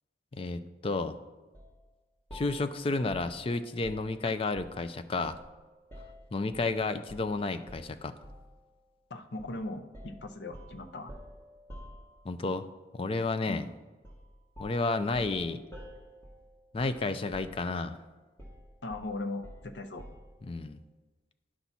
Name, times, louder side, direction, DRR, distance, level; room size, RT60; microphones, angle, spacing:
voice 1, 0.3-1.2 2.3-5.4 6.3-8.2 12.2-12.7 12.9-13.6 14.6-15.6 16.7-18.0 20.4-20.8, left 3 dB, 30° left, 10 dB, 0.4 m, -31 dB
sound 1, 1.5-1.8 2.3-4.9 5.2-6.7 7.1-7.3 7.7-8.6 9.4-9.6 9.9-12.5 14.0-14.3 14.5-17.1 17.3-17.9 18.4-20.4, equal, 10° left, 1.7 m, -49 dB
voice 2, 9.1-11.1 13.5-13.6 18.8-20.1, left 2 dB, 75° left, 7 dB, 0.7 m, -39 dB
10.5 x 5.9 x 4.1 m, 1.2 s
head